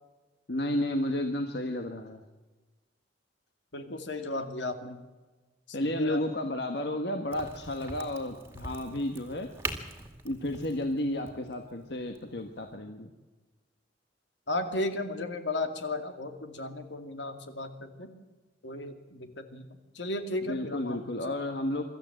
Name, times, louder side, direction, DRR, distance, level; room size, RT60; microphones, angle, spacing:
voice 1, 0.5-2.2 5.7-9.5 10.2-13.1 20.5-21.8, left 1 dB, 65° left, 5 dB, 1.5 m, -32 dB
voice 2, 3.7-5.0 5.7-6.2 14.5-18.1 18.6-21.3, left 2 dB, 80° left, 7 dB, 2.3 m, -35 dB
Crack, 7.3-12.8, right 2 dB, 15° right, 2.2 m, -42 dB
24.5 x 13.5 x 7.9 m, 1.2 s
head